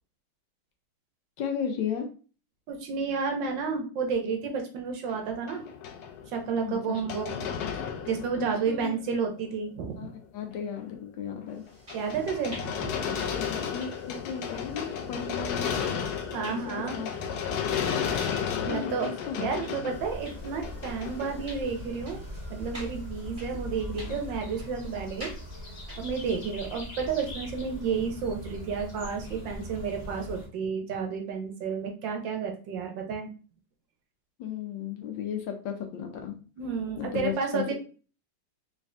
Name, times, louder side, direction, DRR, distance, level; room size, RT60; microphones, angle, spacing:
voice 1, 1.4-2.1 6.6-7.0 8.4-9.0 10.0-11.6 13.0-15.8 16.5-16.6 16.9-17.1 18.6-19.5 24.1-24.2 34.4-36.4 37.0-37.7, left 7 dB, 75° left, 4 dB, 1.3 m, -35 dB
voice 2, 2.7-5.6 6.3-7.5 8.1-10.1 11.9-12.9 16.3-17.0 18.6-19.1 19.4-22.2 22.5-25.3 26.0-33.3 36.6-37.7, right 5 dB, 70° right, 4 dB, 1.2 m, -31 dB
sound 1, 5.1-8.9 9.2-9.3 10.1-10.2 10.5-10.9 11.5-21.9, left 7 dB, 90° left, 0.8 m, -33 dB
sound 2, 11.5-26.5, equal, 10° right, 1.6 m, -50 dB
sound 3, 19.9-30.5, left 1 dB, 40° left, 0.7 m, -41 dB
3.4 x 3.1 x 2.5 m, 0.37 s
omnidirectional pair, 2.3 m